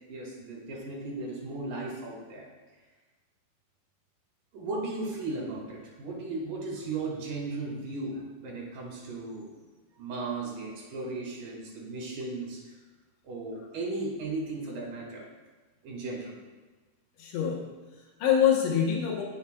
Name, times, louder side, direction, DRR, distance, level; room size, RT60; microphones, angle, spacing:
voice 1, 0.1-2.5 4.5-9.6 10.0-12.7 13.2-15.2 15.8-16.4, right 3 dB, 55° right, -2 dB, 3.1 m, -36 dB
voice 2, 17.2-19.2, left 8 dB, 80° left, -1 dB, 3.4 m, -26 dB
17.0 x 7.1 x 2.3 m, 1.3 s
omnidirectional pair, 5.3 m